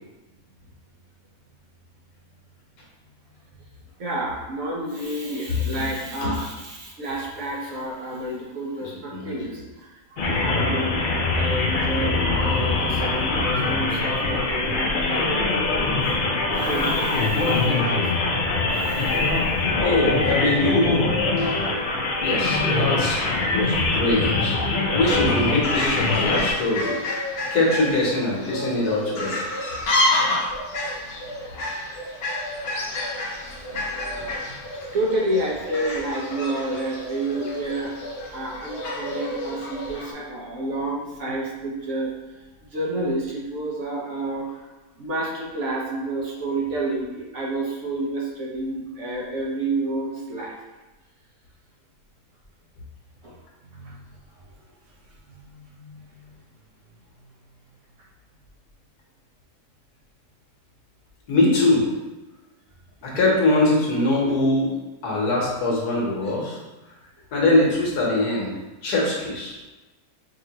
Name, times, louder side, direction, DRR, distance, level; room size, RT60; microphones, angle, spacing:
voice 1, 4.0-9.9 10.1-11.1 11.3-15.2 16.5-18.1 18.7-19.7 32.9-33.2 33.5-37.9 38.3-42.1 42.7-44.5 45.0-50.5 53.2-53.3 53.7-54.0 55.3-56.0, right 1 dB, 60° right, -3 dB, 1.1 m, -30 dB
voice 2, 8.8-9.4 19.8-21.1 21.4-21.6 22.2-23.2 23.5-24.5 24.9-27.0 27.5-29.4 61.3-61.8 63.0-64.7 65.0-66.6 67.3-68.5 68.8-69.6, left 2 dB, 85° left, -3 dB, 1.6 m, -22 dB
sound 1, 10.2-26.5, left 3 dB, 70° left, 0.4 m, -23 dB
Fowl, 25.2-40.1, left 1 dB, 50° left, 0.8 m, -29 dB
5.2 x 2.7 x 2.9 m, 1.1 s
omnidirectional pair, 1.6 m